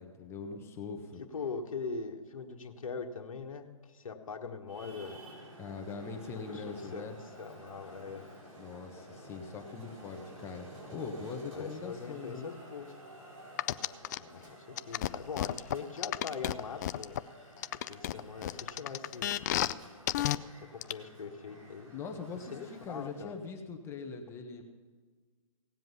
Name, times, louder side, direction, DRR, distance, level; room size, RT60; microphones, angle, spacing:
voice 1, 0.0-1.2 5.6-7.2 8.6-12.5 21.9-24.6, left 4 dB, 15° left, 3 dB, 1.2 m, -42 dB
voice 2, 1.3-5.2 6.5-6.6 6.9-7.0 7.4-8.3 11.5-12.9 14.2-14.4 14.9-17.2 17.9-19.3 20.5-21.9 22.3-23.3, left 5 dB, 70° left, 2 dB, 1.6 m, -41 dB
Traffic noise roadway noise, 4.7-23.3, right 1 dB, 80° right, 5.0 m, -52 dB
sound 1, 13.6-14.2 14.8-17.2 17.6-19.7 20.1-20.4 20.8-20.9, left 13 dB, 30° left, 0.4 m, -31 dB
18.0 x 7.7 x 5.6 m, 1.5 s
hypercardioid pair, 140°, 18 cm